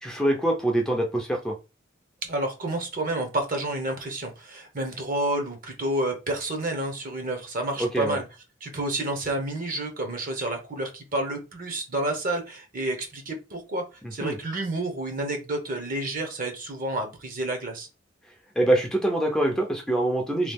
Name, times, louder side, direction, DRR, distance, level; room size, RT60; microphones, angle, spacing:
voice 1, 0.0-1.6 7.8-8.2 14.0-14.4 18.6-20.5, right 1 dB, 5° left, 0.5 m, -24 dB
voice 2, 2.2-8.2 8.6-13.9 14.1-17.9, right 1 dB, 45° right, 0.9 m, -29 dB
3.0 x 2.4 x 3.4 m
head